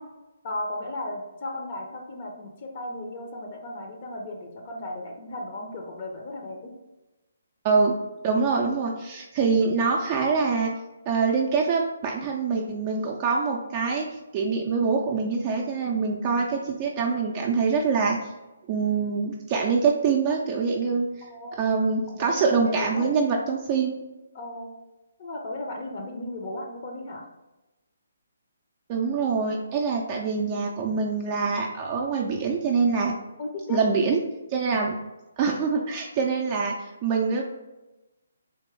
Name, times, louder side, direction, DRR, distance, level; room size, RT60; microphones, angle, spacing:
voice 1, 0.4-6.7 21.3-21.7 22.1-23.1 24.3-24.7 25.2-27.3 33.4-33.8, left 1 dB, 40° left, 1 dB, 0.6 m, -35 dB
voice 2, 7.6-8.0 8.2-10.7 11.1-14.1 14.3-18.2 18.7-21.1 21.6-23.9 28.9-33.1 33.7-34.2 34.5-35.0 35.4-37.4, right 5 dB, 30° right, 0 dB, 0.4 m, -24 dB
3.4 x 2.9 x 3.3 m, 1.0 s
figure-of-eight pair, 140°, 0 cm